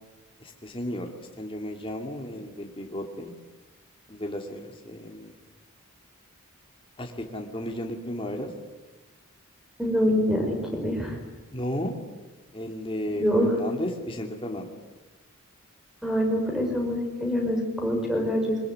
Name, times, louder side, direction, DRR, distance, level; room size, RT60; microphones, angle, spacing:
voice 1, 0.4-1.1 1.4-3.3 4.1-5.3 7.0-8.5 11.5-11.9 12.5-14.7, equal, 25° left, 2 dB, 2.6 m, -34 dB
voice 2, 9.8-11.2 13.1-13.5 16.0-18.6, equal, ahead, 2 dB, 5.6 m, -25 dB
23.5 x 20.5 x 9.7 m, 1.2 s
head